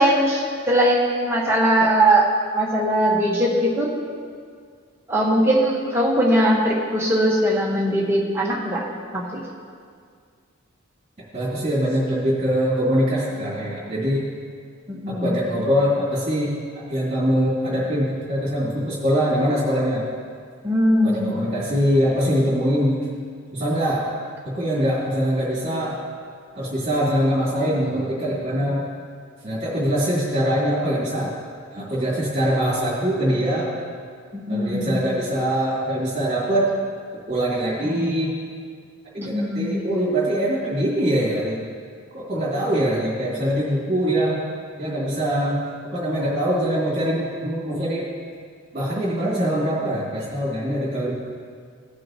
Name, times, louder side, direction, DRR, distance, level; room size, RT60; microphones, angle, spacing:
voice 1, 0.0-2.3 2.5-3.9 5.1-8.8 9.1-9.4 14.9-15.4 20.6-21.4 34.3-35.0 39.2-39.8, right 1 dB, 10° right, -3 dB, 1.4 m, -20 dB
voice 2, 11.3-14.2 15.2-20.0 21.0-23.0 23.5-24.1 24.4-26.0 26.5-28.9 29.4-31.3 31.7-33.7 34.5-36.7 37.3-38.4 39.1-41.6 42.1-44.4 44.8-48.1 48.7-51.1, equal, 35° right, -10 dB, 2.5 m, -23 dB
17.0 x 6.3 x 3.0 m, 2.1 s
head